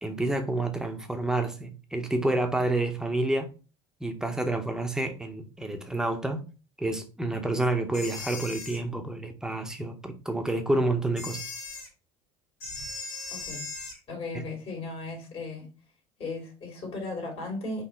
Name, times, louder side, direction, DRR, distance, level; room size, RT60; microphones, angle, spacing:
voice 1, 0.0-3.5 4.0-6.4 6.8-11.4 14.3-14.4, right 2 dB, 5° right, 1.0 m, -29 dB
sound 1, 7.9-8.8 11.2-11.9 12.6-14.0, left 3 dB, 85° left, 2.3 m, -38 dB
voice 2, 13.3-13.7 14.1-15.7 16.2-17.8, left 3 dB, 45° left, 2.4 m, -36 dB
4.3 x 2.8 x 4.5 m
supercardioid pair, 95°, 13 cm